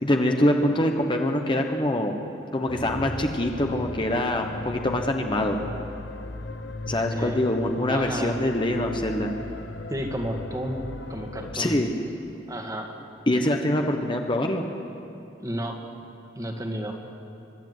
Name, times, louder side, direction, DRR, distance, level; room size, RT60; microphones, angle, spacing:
voice 1, 0.0-2.2 2.5-5.6 6.9-9.3 11.5-11.9 13.3-14.6, left 1 dB, 25° left, 3 dB, 1.2 m, -24 dB
sound 1, 2.7-11.6, left 2 dB, 80° left, 1.0 m, -37 dB
voice 2, 7.9-8.4 9.9-10.8 11.1-11.7 12.5-13.0 15.4-15.8 16.3-16.9, equal, 20° right, 2 dB, 1.9 m, -32 dB
24.0 x 12.0 x 9.4 m, 2.6 s
head